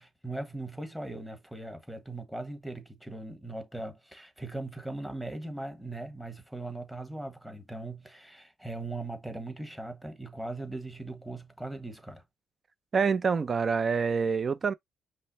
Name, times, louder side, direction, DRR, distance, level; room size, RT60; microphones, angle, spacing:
voice 1, 0.0-12.2, right 2 dB, 5° right, 1.4 m, -39 dB
voice 2, 12.9-14.7, right 5 dB, 40° right, 0.6 m, -26 dB
5.4 x 2.1 x 4.1 m
cardioid pair, 90°, 0 cm